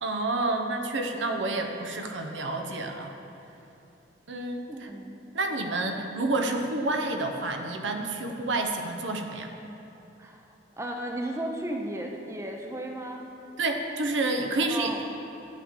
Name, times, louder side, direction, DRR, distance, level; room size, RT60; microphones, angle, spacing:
voice 1, 0.0-3.1 4.3-4.9 5.3-9.5 13.6-15.1, right 2 dB, 80° right, 4 dB, 0.8 m, -29 dB
voice 2, 4.7-5.2 10.2-10.5 10.8-13.2 14.7-15.1, right 1 dB, 15° right, 2 dB, 0.5 m, -35 dB
11.5 x 7.4 x 3.7 m, 3.0 s
head